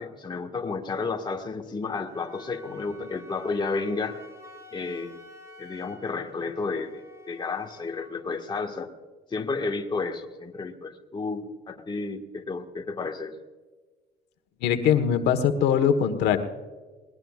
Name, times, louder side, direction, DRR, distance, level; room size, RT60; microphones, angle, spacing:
voice 1, 0.0-4.2 4.7-5.2 5.6-7.0 7.3-8.9 9.3-13.3, left 4 dB, 25° left, 3 dB, 1.7 m, -32 dB
Wind instrument woodwind instrument, 2.1-8.2, left 1 dB, 15° right, 2.9 m, -49 dB
voice 2, 14.6-16.4, left 8 dB, 80° left, 7 dB, 1.4 m, -22 dB
21.5 x 19.5 x 2.5 m, 1.3 s
cardioid pair, 110°, 17 cm